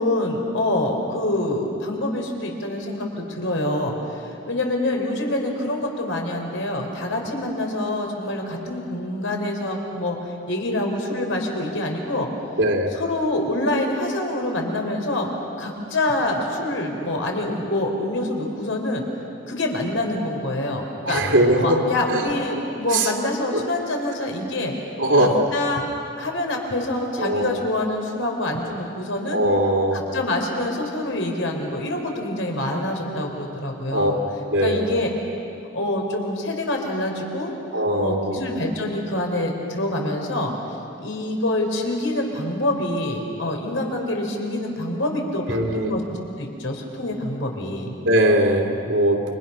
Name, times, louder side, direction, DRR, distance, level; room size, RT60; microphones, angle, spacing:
voice 1, 0.0-10.2 10.5-12.3 12.9-15.3 15.6-19.0 19.5-21.2 21.6-24.7 25.2-25.9 26.2-29.4 29.9-34.2 34.6-35.1 35.7-37.5 38.0-40.5 41.0-46.0 46.4-47.9, left 1 dB, 80° left, 2 dB, 4.3 m, -26 dB
voice 2, 12.6-12.9 21.0-21.8 22.1-22.2 22.9-23.1 23.5-23.6 25.0-25.4 27.2-27.6 29.3-30.0 33.9-34.1 34.5-34.9 37.7-38.4 45.5-46.0 48.0-49.3, right 1 dB, 80° right, -1 dB, 3.0 m, -20 dB
29.0 x 26.5 x 6.1 m, 2.7 s
head